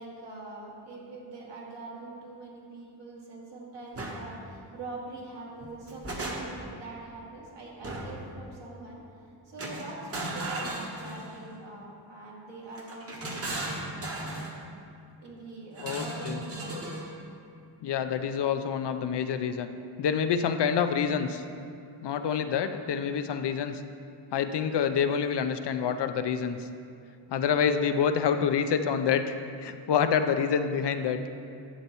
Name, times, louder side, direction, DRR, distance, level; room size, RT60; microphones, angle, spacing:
voice 1, 0.0-14.5 15.2-16.8, right 2 dB, 70° right, -4 dB, 2.2 m, -43 dB
sound 1, 3.9-4.2 5.6-6.7 7.8-8.3 9.6-11.4 12.7-14.5 15.8-17.1, right 2 dB, 30° right, 1.1 m, -36 dB
voice 2, 15.8-16.4 17.8-19.7 20.0-21.4 22.0-23.8 24.3-26.7 27.3-31.2, left 7 dB, 65° left, 9 dB, 0.5 m, -27 dB
11.0 x 8.0 x 3.0 m, 2.5 s
wide cardioid pair, 135°, 45 cm